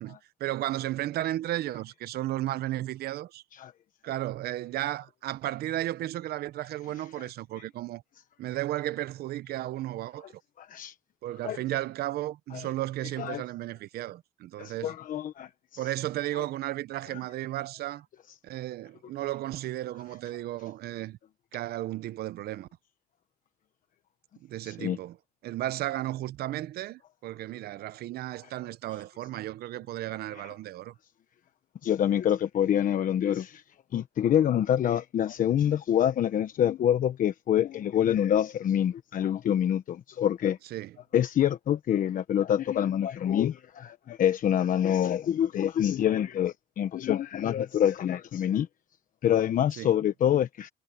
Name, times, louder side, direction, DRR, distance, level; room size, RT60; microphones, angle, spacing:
voice 1, 0.0-3.4 4.0-8.0 8.4-10.3 11.2-14.9 15.8-18.1 18.4-21.2 21.5-22.7 24.4-25.2 25.4-30.9 40.7-40.9 49.8-49.9, right 15 dB, 70° right, 0.7 m, -34 dB
voice 2, 10.6-10.9 11.4-11.6 12.5-12.7 13.2-13.4 14.6-15.5 24.6-25.0 31.8-33.6 33.9-40.6 41.1-48.7 49.2-50.7, left 10 dB, 50° left, 1.1 m, -26 dB
cardioid pair, 110°, 17 cm